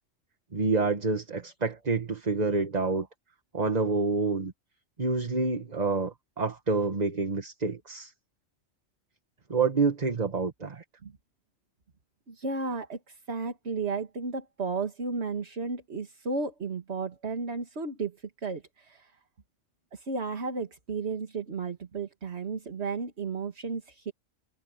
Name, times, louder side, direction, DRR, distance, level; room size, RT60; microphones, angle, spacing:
voice 1, 0.5-3.1 3.5-4.5 5.0-8.1 9.5-10.8, right 4 dB, 30° right, 1.7 m, -28 dB
voice 2, 12.3-19.1 19.9-24.1, right 4 dB, 55° right, 2.2 m, -33 dB
omnidirectional pair, 1.3 m